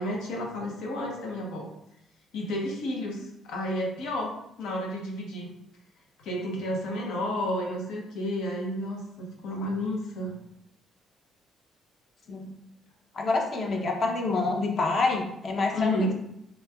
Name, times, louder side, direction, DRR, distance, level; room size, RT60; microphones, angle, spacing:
voice 1, 0.0-1.7 2.3-5.5 6.2-10.4 15.7-16.1, left 1 dB, 85° left, -1 dB, 0.8 m, -31 dB
voice 2, 13.1-16.1, left 3 dB, 45° left, 2 dB, 0.7 m, -27 dB
3.7 x 3.1 x 2.3 m, 0.79 s
cardioid pair, 110°, 0 cm